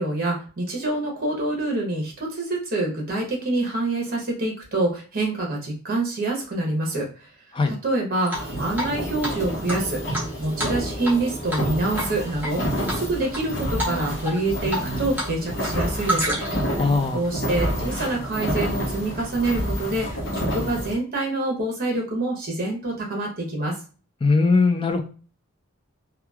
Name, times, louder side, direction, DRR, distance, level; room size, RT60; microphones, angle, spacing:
voice 1, 0.0-7.3 7.7-10.0 10.4-16.3 17.1-23.7, right 2 dB, 45° right, -1 dB, 0.9 m, -26 dB
sound 1, 8.3-20.9, equal, 60° left, 0.8 m, -29 dB
Drip, 8.3-8.9 9.2-9.3 9.7-11.2 11.5-11.7 12.0-12.5 12.9-13.4 13.8-14.0 14.2-15.3 15.6-16.7, equal, 10° right, 0.8 m, -28 dB
voice 2, 16.8-17.2 24.2-25.0, left 3 dB, 25° left, 5 dB, 0.3 m, -20 dB
3.0 x 2.3 x 2.3 m, 0.38 s
head